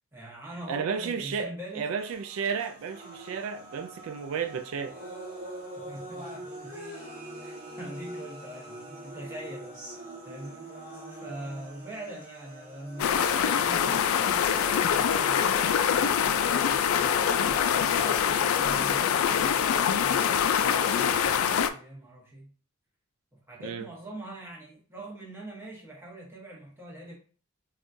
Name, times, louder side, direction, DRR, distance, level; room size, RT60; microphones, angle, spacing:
voice 1, 0.1-1.9 5.7-6.8 7.4-9.8 10.2-10.7 11.1-22.5 23.3-27.1, right 1 dB, 10° right, 0.9 m, -43 dB
voice 2, 0.7-4.9 23.6-23.9, right 6 dB, 85° right, 0.3 m, -33 dB
sound 1, 2.0-18.0, right 1 dB, 40° right, 1.5 m, -44 dB
sound 2, 13.0-21.7, left 8 dB, 90° left, 0.3 m, -24 dB
3.6 x 2.3 x 2.6 m
head